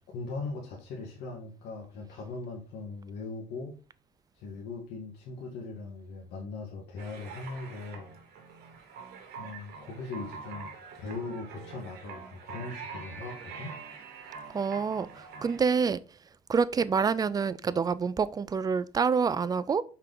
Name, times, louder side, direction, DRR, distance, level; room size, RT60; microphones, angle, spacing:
voice 1, 0.1-3.8 4.4-8.1 9.4-10.7 11.0-13.8, left 3 dB, 80° left, 1.4 m, -39 dB
sound 1, 7.0-15.6, right 5 dB, 75° right, 1.4 m, -45 dB
voice 2, 14.5-16.0 16.5-19.8, right 5 dB, 20° right, 0.4 m, -27 dB
5.6 x 4.5 x 3.8 m
cardioid pair, 110°, 17 cm